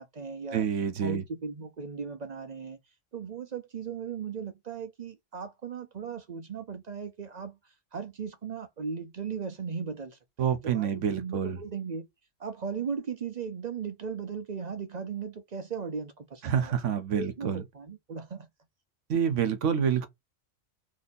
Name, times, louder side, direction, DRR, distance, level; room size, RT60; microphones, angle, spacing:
voice 1, 0.0-0.7 1.0-2.8 3.1-12.1 12.4-16.7 17.1-18.5, right 6 dB, 45° right, 0.6 m, -37 dB
voice 2, 0.5-1.2 10.4-11.6 16.4-17.6 19.1-20.1, right 8 dB, 75° right, 1.1 m, -27 dB
2.9 x 2.7 x 3.9 m
omnidirectional pair, 1.3 m